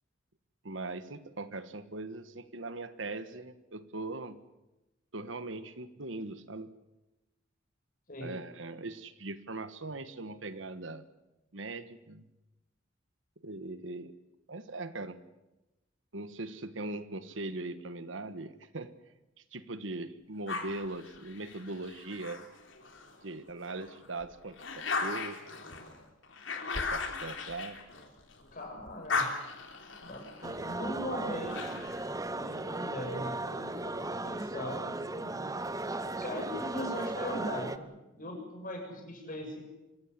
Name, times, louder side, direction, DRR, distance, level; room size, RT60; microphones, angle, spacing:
voice 1, 0.6-4.4 5.1-6.7 8.2-11.0 11.5-12.3 13.4-14.1 14.5-15.2 16.1-18.9 19.5-22.4 23.2-25.4 26.7-27.8, right 2 dB, 75° right, 12 dB, 1.4 m, -40 dB
sound 1, 20.5-23.2 23.7-28.5 28.8-32.1, left 4 dB, 80° left, 3.4 m, -38 dB
voice 2, 28.5-29.3 30.0-31.8 32.3-34.0 34.2-35.4 36.1-39.6, left 1 dB, 45° left, 2 dB, 7.5 m, -39 dB
sound 2, 30.4-37.8, right 2 dB, 20° right, 0.9 m, -36 dB
25.5 x 15.5 x 9.9 m, 1.0 s
head